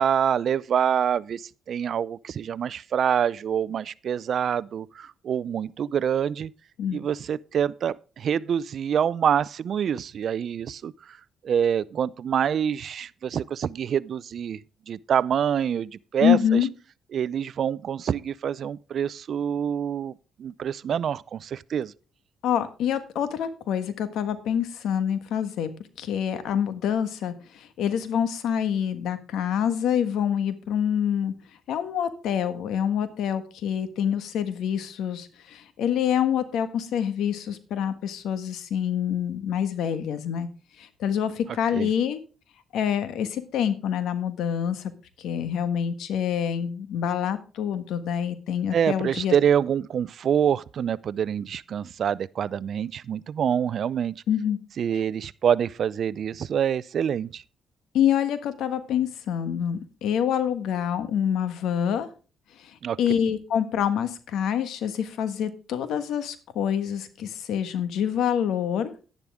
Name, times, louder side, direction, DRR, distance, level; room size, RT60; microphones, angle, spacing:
voice 1, 0.0-6.5 6.9-10.9 11.4-14.6 14.9-16.4 17.1-20.1 20.4-21.9 41.7-41.9 48.7-54.2 54.8-57.4 62.8-63.0, right 8 dB, 60° right, 0.4 m, -26 dB
voice 2, 16.2-16.7 22.4-25.7 26.0-31.3 31.7-40.5 40.8-42.2 42.7-44.9 45.2-49.3 54.3-54.6 54.9-55.0 57.9-62.1 62.6-68.9, left 9 dB, 80° left, 1.4 m, -26 dB
11.0 x 10.5 x 3.6 m
cardioid pair, 90°, 0 cm